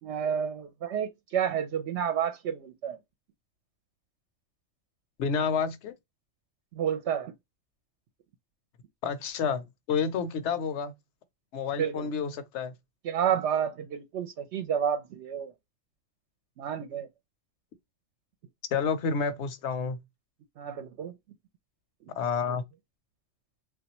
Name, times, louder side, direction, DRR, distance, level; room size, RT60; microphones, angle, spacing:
voice 1, 0.0-3.0 6.7-7.3 11.7-12.1 13.0-15.5 16.6-17.1 20.6-21.1 22.5-22.6, right 8 dB, 70° right, 0.8 m, -30 dB
voice 2, 5.2-5.9 9.0-10.9 11.5-12.7 18.7-20.0 22.1-22.6, left 6 dB, 70° left, 0.9 m, -29 dB
3.3 x 2.4 x 2.9 m
omnidirectional pair, 1.3 m